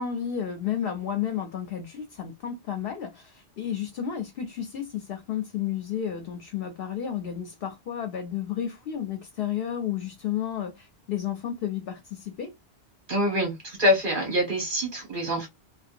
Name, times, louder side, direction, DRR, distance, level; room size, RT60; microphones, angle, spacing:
voice 1, 0.0-12.5, left 9 dB, 65° left, 0.8 m, -32 dB
voice 2, 13.1-15.5, left 1 dB, 50° right, 1.6 m, -25 dB
2.7 x 2.3 x 2.5 m
omnidirectional pair, 1.1 m